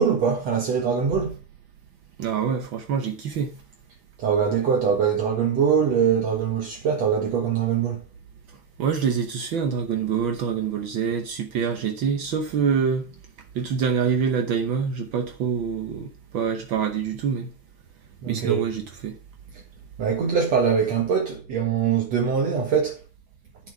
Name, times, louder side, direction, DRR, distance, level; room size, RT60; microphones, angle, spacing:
voice 1, 0.0-1.3 4.2-8.0 18.2-18.7 20.0-23.0, right 7 dB, 60° right, 2.7 m, -22 dB
voice 2, 2.2-3.5 8.8-13.1 13.5-17.5 18.3-19.2, right 6 dB, 75° right, 1.1 m, -26 dB
9.8 x 7.3 x 4.8 m
omnidirectional pair, 3.5 m